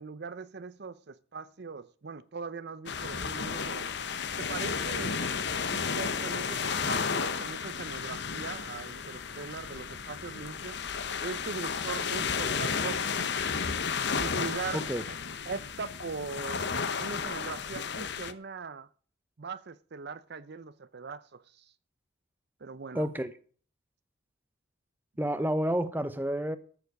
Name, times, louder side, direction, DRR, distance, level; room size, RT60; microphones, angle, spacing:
voice 1, 0.0-3.9 4.4-5.2 5.7-10.8 11.2-13.4 14.2-14.9 15.5-18.9 19.4-21.7 22.6-23.1 25.4-25.5, right 4 dB, 55° right, 0.6 m, -40 dB
sound 1, 2.9-18.3, left 6 dB, 55° left, 0.9 m, -33 dB
voice 2, 22.9-23.3 25.2-26.6, equal, 10° right, 0.9 m, -29 dB
13.5 x 7.1 x 6.5 m
head